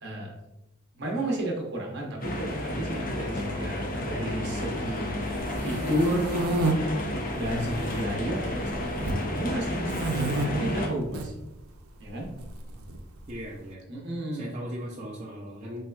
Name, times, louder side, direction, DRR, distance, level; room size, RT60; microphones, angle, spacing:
voice 1, 0.0-0.3 0.9-5.1 5.6-6.4 7.3-11.3 12.0-12.3 13.9-14.6, right 1 dB, 50° right, 0 dB, 0.8 m, -32 dB
sound 1, 2.2-10.9, left 1 dB, 40° left, 0.6 m, -32 dB
sound 2, 5.3-6.7 7.4-8.0 8.3-9.2 9.9-10.5 11.0-11.3 12.4-13.3, right 2 dB, 80° right, 0.5 m, -29 dB
voice 2, 13.3-13.8 14.3-15.9, equal, 30° right, -5 dB, 0.5 m, -38 dB
4.4 x 3.2 x 2.3 m, 0.95 s
head